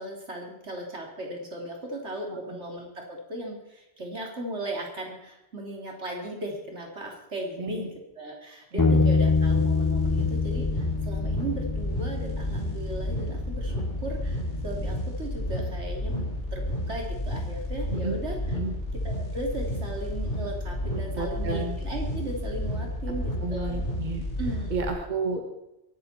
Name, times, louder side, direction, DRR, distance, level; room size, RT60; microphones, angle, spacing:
voice 1, 0.0-13.7 14.0-16.3 16.5-18.4 19.0-23.8 24.4-24.8, right 1 dB, 75° right, 0 dB, 3.5 m, -36 dB
voice 2, 7.6-7.9 8.7-9.1 17.9-18.2 18.5-18.7 21.1-21.8 23.4-24.2 24.7-25.4, right 3 dB, 40° right, 3 dB, 1.7 m, -31 dB
Bass guitar, 8.8-15.0, left 4 dB, 25° left, 0.5 m, -27 dB
sound 1, 8.9-24.9, left 1 dB, 75° left, 4.7 m, -31 dB
22.0 x 12.0 x 4.4 m, 0.90 s
omnidirectional pair, 1.2 m